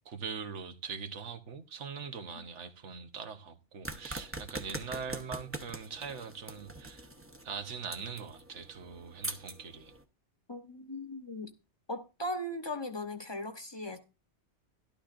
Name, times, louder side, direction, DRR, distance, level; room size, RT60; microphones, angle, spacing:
voice 1, 0.0-7.1 7.4-9.9, right 6 dB, 90° right, 1.4 m, -42 dB
sound 1, 3.9-10.0, right 2 dB, 15° right, 0.8 m, -43 dB
voice 2, 10.5-11.5 11.9-14.0, left 1 dB, 25° left, 1.0 m, -38 dB
12.5 x 12.0 x 2.5 m
omnidirectional pair, 1.2 m